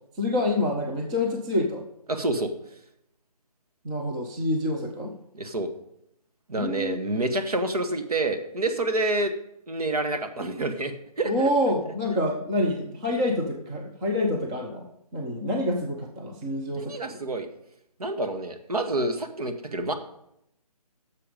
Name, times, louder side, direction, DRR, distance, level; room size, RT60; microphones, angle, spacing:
voice 1, 0.2-1.8 3.8-5.1 6.6-7.0 11.2-17.0, left 1 dB, 10° right, 1 dB, 0.5 m, -27 dB
voice 2, 2.1-2.5 5.3-5.7 6.5-9.3 9.7-11.3 16.7-17.5 18.0-19.9, right 2 dB, 70° right, 8 dB, 1.5 m, -28 dB
10.5 x 6.8 x 5.1 m, 0.78 s
figure-of-eight pair, 160°, 20 cm